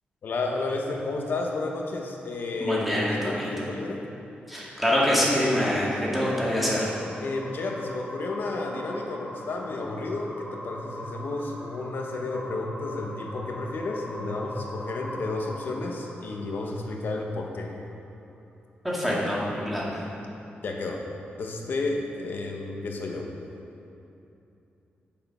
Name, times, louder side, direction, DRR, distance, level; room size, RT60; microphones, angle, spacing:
voice 1, 0.2-4.0 7.2-17.7 20.6-21.0 21.4-23.3, left 3 dB, 65° left, 1 dB, 1.1 m, -32 dB
voice 2, 2.6-3.7 4.5-6.9 18.8-20.0, equal, 5° right, -6 dB, 2.0 m, -25 dB
sound 1, 5.7-17.3, left 1 dB, 20° left, 1.5 m, -41 dB
7.7 x 6.8 x 5.5 m, 2.8 s
wide cardioid pair, 115°, 4 cm